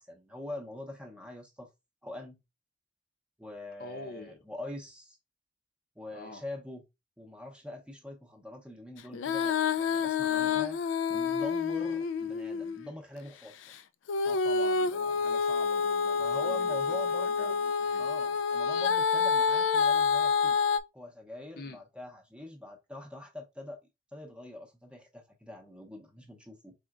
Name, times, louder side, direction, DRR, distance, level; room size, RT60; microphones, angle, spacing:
voice 1, 0.0-1.7 2.0-2.4 3.4-5.2 6.0-6.8 7.2-10.8 11.1-13.6 16.2-17.6 18.0-20.6 20.9-23.8 24.1-26.7, left 1 dB, 5° right, 0.7 m, -44 dB
voice 2, 3.8-4.4 6.1-6.4 10.3-10.6 14.2-18.1 21.5-21.8, left 2 dB, 55° left, 0.7 m, -45 dB
Female singing, 9.1-12.9 14.1-20.8, left 5 dB, 85° left, 0.3 m, -28 dB
4.2 x 3.8 x 2.4 m
head